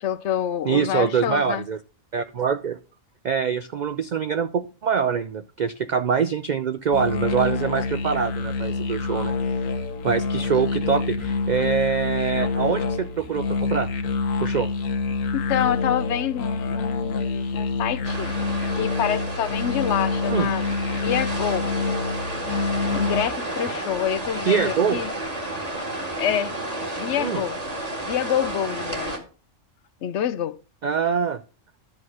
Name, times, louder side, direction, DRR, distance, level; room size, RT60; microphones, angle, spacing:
voice 1, 0.0-1.6 15.3-18.3 18.7-20.7 21.0-21.7 22.9-25.1 26.2-26.5 26.9-27.6 28.1-29.1 30.0-30.6, left 10 dB, 65° left, 0.8 m, -27 dB
voice 2, 0.6-1.8 2.1-2.8 3.2-9.3 10.0-13.9 14.4-14.7 20.3-20.5 24.5-25.0 27.2-27.4 30.8-31.4, right 6 dB, 65° right, 0.4 m, -24 dB
sound 1, 6.9-23.3, left 4 dB, 90° left, 1.4 m, -26 dB
sound 2, 18.0-29.2, right 1 dB, 30° right, 2.1 m, -31 dB
11.5 x 4.2 x 6.2 m
omnidirectional pair, 1.3 m